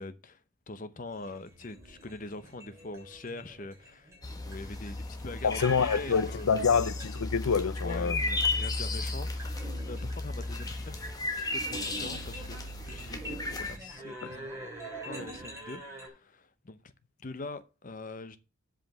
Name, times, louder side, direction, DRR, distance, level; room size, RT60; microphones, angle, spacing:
voice 1, 0.0-4.1 4.5-6.8 7.8-9.6 9.9-11.1 11.5-12.6 12.9-14.7 15.0-16.9 17.2-18.4, left 2 dB, 40° left, 0.8 m, -43 dB
sound 1, 1.1-16.1, right 1 dB, 15° right, 3.3 m, -45 dB
sound 2, 4.2-13.8, left 2 dB, 15° left, 1.1 m, -34 dB
voice 2, 5.4-8.2 14.2-14.4, left 6 dB, 90° left, 0.5 m, -27 dB
7.9 x 5.1 x 7.1 m
head